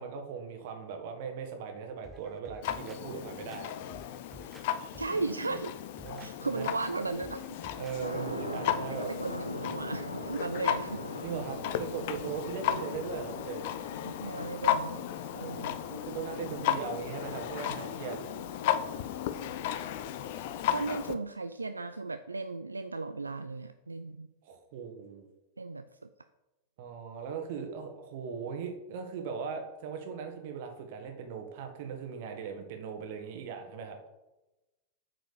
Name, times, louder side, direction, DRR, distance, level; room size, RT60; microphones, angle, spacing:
voice 1, 0.0-3.7 6.0-6.7 7.8-9.1 11.2-13.6 15.3-18.2 24.4-25.3 26.8-34.0, right 6 dB, 50° right, 4 dB, 1.7 m, -39 dB
sound 1, 2.0-3.0 3.5-4.7 4.9-5.3 5.8-6.3 6.8-6.9 7.2-8.0 8.3-8.5, right 2 dB, 10° right, 0.7 m, -52 dB
Clock, 2.6-21.2, left 10 dB, 50° left, 0.6 m, -35 dB
voice 2, 5.0-5.7 6.2-7.6 9.2-11.0 14.0-15.1 15.4-15.8 16.6-16.7 20.7-24.3 25.6-25.8, right 3 dB, 80° right, 10 dB, 0.3 m, -36 dB
sound 2, 8.0-19.6, equal, 85° left, 1.0 m, -43 dB
8.4 x 5.0 x 6.9 m, 1.0 s
figure-of-eight pair, 90°, 0 cm